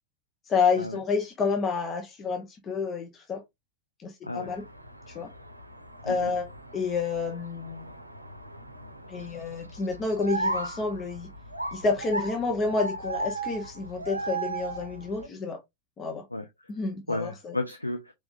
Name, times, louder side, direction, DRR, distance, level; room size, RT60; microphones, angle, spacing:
voice 1, 0.5-3.4 4.0-4.6 5.1-5.3 6.0-6.5 6.7-7.9 9.1-11.3 11.7-15.6 16.0-16.2 16.7-17.5, left 4 dB, 25° left, 1.0 m, -29 dB
sound 1, 4.4-15.3, right 2 dB, 85° right, 0.6 m, -36 dB
voice 2, 16.3-16.7 17.1-18.1, left 2 dB, 85° left, 0.5 m, -33 dB
4.7 x 3.5 x 2.6 m
figure-of-eight pair, 90°, 0 cm